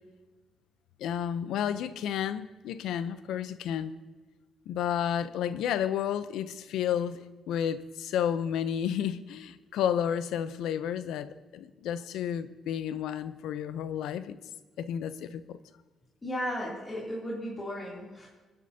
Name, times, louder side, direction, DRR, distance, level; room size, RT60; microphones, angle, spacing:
voice 1, 1.0-3.9 4.7-7.2 7.5-14.4 14.8-15.6, left 9 dB, 85° left, 13 dB, 0.6 m, -31 dB
voice 2, 16.2-18.3, equal, 25° left, -5 dB, 2.9 m, -35 dB
28.5 x 9.8 x 2.8 m, 1.3 s
cardioid pair, 90°, 0 cm